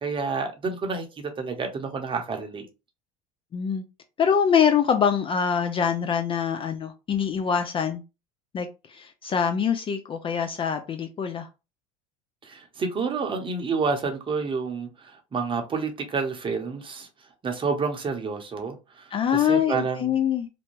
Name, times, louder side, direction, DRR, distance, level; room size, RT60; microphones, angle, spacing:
voice 1, 0.0-2.7 12.4-17.1 17.4-20.2, right 4 dB, 25° right, 0.8 m, -29 dB
voice 2, 3.5-3.8 4.2-8.0 8.5-11.5 19.1-20.5, left 7 dB, 30° left, 0.4 m, -24 dB
2.6 x 2.1 x 3.1 m
hypercardioid pair, 85°, 19 cm